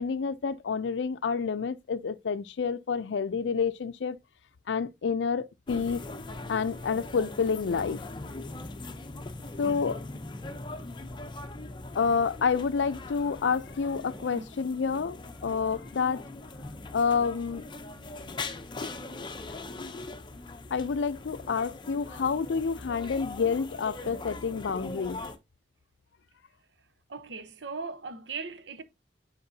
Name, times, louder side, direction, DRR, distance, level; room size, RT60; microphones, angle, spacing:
voice 1, 0.0-4.2 4.7-6.0 6.5-8.1 9.6-10.0 12.0-16.2 16.9-17.6 20.7-25.2, left 5 dB, 90° left, 0.5 m, -29 dB
sound 1, 5.7-25.4, left 2 dB, 25° left, 0.6 m, -41 dB
voice 2, 27.1-28.8, right 4 dB, 85° right, 0.9 m, -38 dB
9.5 x 4.5 x 2.7 m
head